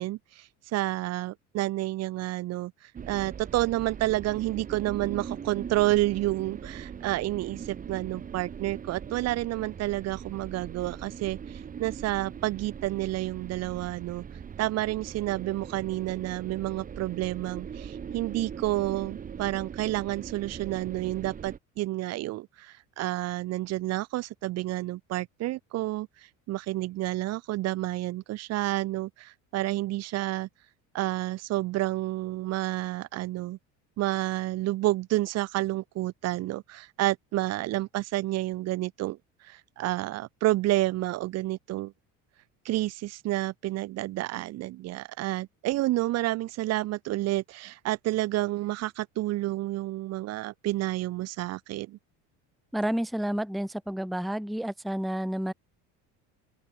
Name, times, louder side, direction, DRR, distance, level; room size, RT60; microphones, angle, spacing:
voice 1, 0.0-14.2 14.6-26.1 26.5-30.5 30.9-33.6 34.0-41.9 42.6-52.0, right 17 dB, 50° right, 1.0 m, -30 dB
sound 1, 2.9-21.6, right 7 dB, 25° right, 2.2 m, -41 dB
voice 2, 52.7-55.5, right 1 dB, ahead, 0.8 m, -30 dB
open air
cardioid pair, 155°, 33 cm